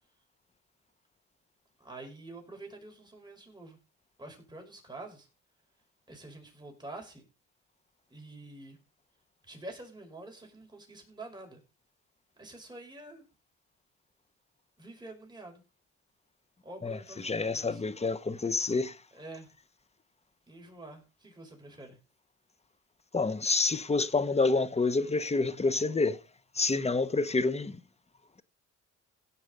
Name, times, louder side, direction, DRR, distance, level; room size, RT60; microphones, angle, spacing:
voice 1, 1.8-3.8 4.2-5.3 6.1-7.3 8.1-8.8 9.5-11.6 12.4-13.2 14.8-15.6 16.6-17.8 19.1-19.5 20.5-22.0, right 2 dB, 15° right, 5.6 m, -47 dB
voice 2, 16.8-19.0 23.1-26.2 26.5-27.8, left 3 dB, 20° left, 1.1 m, -28 dB
16.5 x 6.0 x 5.3 m
cardioid pair, 90°, 30 cm